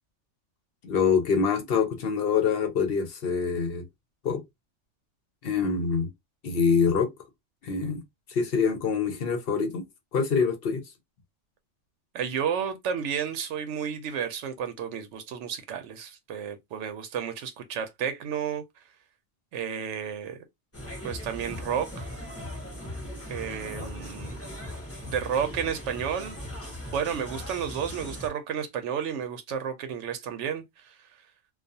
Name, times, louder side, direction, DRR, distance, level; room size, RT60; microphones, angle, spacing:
voice 1, 0.8-3.8 4.2-4.4 5.4-6.1 6.4-7.1 7.6-8.0 8.3-9.9 10.1-10.8, left 5 dB, 60° left, 0.8 m, -25 dB
voice 2, 12.1-18.6 19.5-20.4 21.0-22.1 23.3-24.4 25.0-26.4 26.9-31.0, right 8 dB, 85° right, 0.9 m, -32 dB
sound 1, 20.7-28.3, left 1 dB, 15° left, 0.8 m, -39 dB
2.3 x 2.3 x 2.6 m
omnidirectional pair, 1.2 m